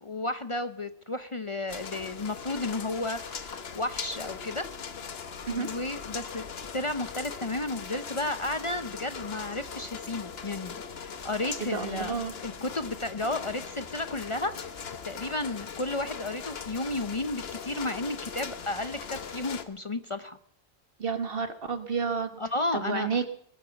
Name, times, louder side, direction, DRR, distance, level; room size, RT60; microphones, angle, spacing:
voice 1, 0.0-4.6 5.3-6.5 6.7-12.2 12.4-14.7 15.0-20.4 22.4-23.3, left 2 dB, 35° left, 10 dB, 0.7 m, -33 dB
sound 1, 1.7-19.6, left 6 dB, 75° left, 1.3 m, -40 dB
voice 2, 11.6-12.3 21.0-22.4 22.7-23.3, right 5 dB, 65° right, 9 dB, 1.6 m, -30 dB
21.5 x 9.1 x 7.1 m, 0.67 s
omnidirectional pair, 1.0 m